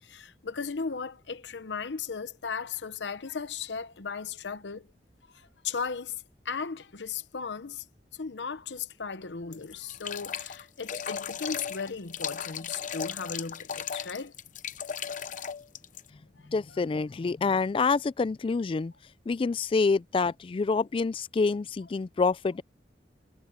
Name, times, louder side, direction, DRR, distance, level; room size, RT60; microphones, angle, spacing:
voice 1, 0.0-4.9 5.3-7.8 8.1-14.3 16.7-16.8, left 5 dB, 90° left, 0.9 m, -36 dB
sound 1, 9.5-16.1, left 8 dB, 45° left, 0.7 m, -36 dB
voice 2, 16.5-18.9 19.3-22.6, left 4 dB, 30° left, 0.3 m, -27 dB
head